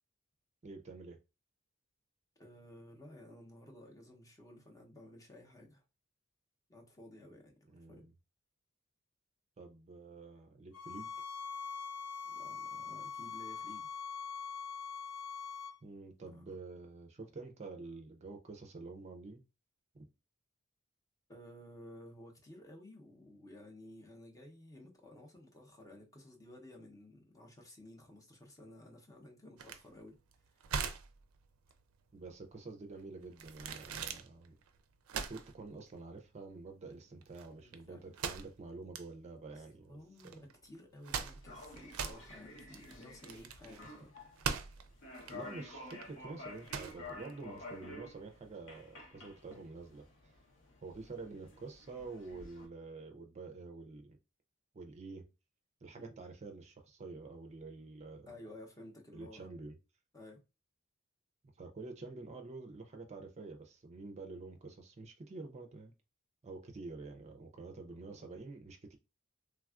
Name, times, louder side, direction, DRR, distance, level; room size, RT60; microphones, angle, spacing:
voice 1, 0.6-1.2 7.7-8.1 9.6-11.1 15.8-19.4 32.1-34.5 35.1-40.0 45.3-50.0 50.8-54.2 54.7-55.3 55.8-58.3 59.1-59.8 61.6-65.9 66.4-69.0, right 3 dB, 35° right, 0.4 m, -48 dB
voice 2, 2.4-5.8 6.7-7.5 7.9-8.0 12.2-13.9 16.3-16.5 21.3-30.2 30.5-30.6 37.1-37.2 37.5-38.1 39.5-44.1 56.0-56.2 58.3-59.5 60.1-60.4 67.9-68.2, left 1 dB, 15° left, 0.6 m, -54 dB
sound 1, 10.7-15.8, left 6 dB, 90° left, 0.4 m, -43 dB
sound 2, 29.6-48.1, right 6 dB, 90° right, 0.4 m, -43 dB
sound 3, 41.3-52.7, left 2 dB, 65° left, 0.8 m, -51 dB
3.3 x 2.3 x 2.3 m
head